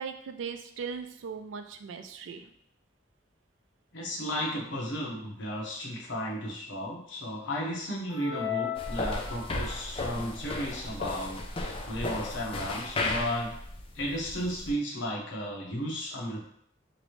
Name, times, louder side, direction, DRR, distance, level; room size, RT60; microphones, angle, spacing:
voice 1, 0.0-2.5 11.7-11.9, right 6 dB, 90° right, 7 dB, 0.4 m, -39 dB
voice 2, 3.9-13.6 13.9-16.4, equal, 85° left, -2 dB, 0.9 m, -34 dB
sound 1, 8.1-9.8, left 10 dB, 30° right, 1.2 m, -35 dB
sound 2, 8.8-14.7, left 2 dB, 30° left, 0.4 m, -35 dB
3.0 x 2.6 x 3.0 m, 0.67 s
head